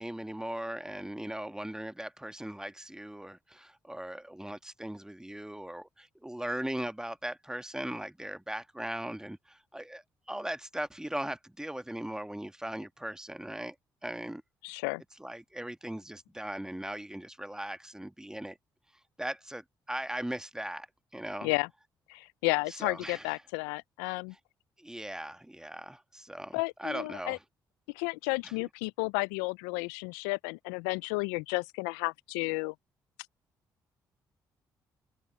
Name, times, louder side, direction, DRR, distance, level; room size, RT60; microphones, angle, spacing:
voice 1, 0.0-13.7 14.0-14.4 15.2-18.6 19.2-20.9 21.1-21.5 22.7-23.3 24.8-27.4 28.4-28.5, right 1 dB, 5° right, 1.5 m, -39 dB
voice 2, 14.6-15.0 21.4-21.7 22.1-24.3 26.5-27.4 27.9-32.7, left 28 dB, 85° left, 0.4 m, -32 dB
hypercardioid pair, 50°, 9 cm